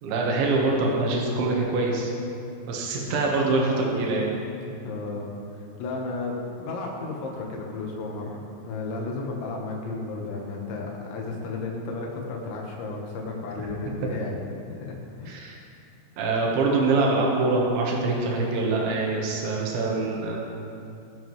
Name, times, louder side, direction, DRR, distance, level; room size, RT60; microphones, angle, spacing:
voice 1, 0.0-2.1 2.7-4.3 13.6-13.7 15.3-15.6 16.2-20.4, right 3 dB, 80° right, -2 dB, 3.7 m, -24 dB
voice 2, 4.9-6.4 6.6-14.4 14.7-15.4, left 3 dB, 80° left, -1 dB, 3.6 m, -33 dB
20.5 x 7.3 x 3.1 m, 2.5 s
omnidirectional pair, 5.2 m